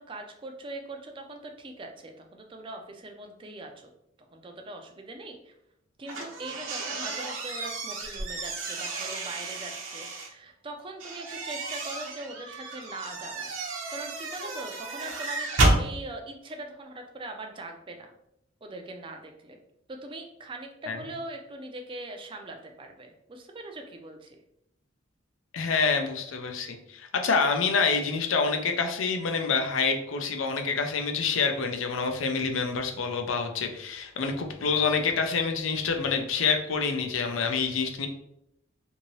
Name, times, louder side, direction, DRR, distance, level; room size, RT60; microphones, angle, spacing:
voice 1, 0.0-3.9 4.3-5.5 6.0-13.6 13.9-18.1 18.6-19.6 19.9-24.4, right 2 dB, 25° right, 4 dB, 0.4 m, -41 dB
sound 1, 6.1-10.3 11.0-15.8, right 2 dB, 80° right, 0.9 m, -31 dB
voice 2, 25.5-38.1, left 5 dB, 80° left, 5 dB, 0.5 m, -27 dB
2.7 x 2.7 x 3.0 m, 0.78 s
head